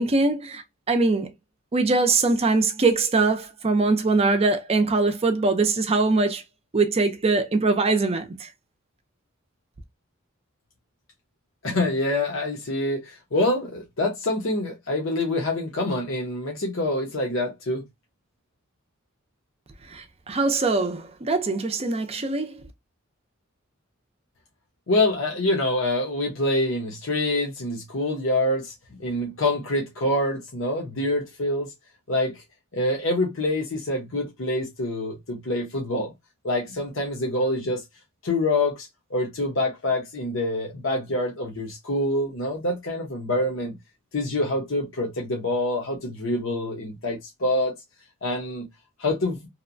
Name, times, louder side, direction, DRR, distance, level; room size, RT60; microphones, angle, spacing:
voice 1, 0.0-1.3 1.7-6.4 6.7-8.5 19.9-22.6, right 3 dB, 30° right, 0.5 m, -22 dB
voice 2, 11.6-17.8 24.9-31.7 32.1-32.4 32.7-36.1 36.4-37.8 38.2-43.8 44.1-47.7 48.2-48.7 49.0-49.4, left 1 dB, 65° left, 0.8 m, -26 dB
2.8 x 2.1 x 2.5 m
head